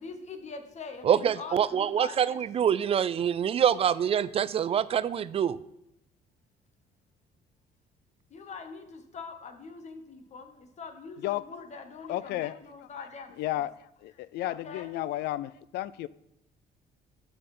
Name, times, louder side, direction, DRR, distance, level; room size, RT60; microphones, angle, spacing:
voice 1, 0.0-2.4 8.3-13.6 14.4-14.9, left 4 dB, 40° left, 1.2 m, -43 dB
voice 2, 1.0-5.6, right 8 dB, 35° right, 0.4 m, -25 dB
voice 3, 12.1-12.6 13.4-13.7 14.0-16.1, left 15 dB, 75° left, 0.4 m, -32 dB
11.0 x 5.4 x 4.3 m
cardioid pair, 110°, 17 cm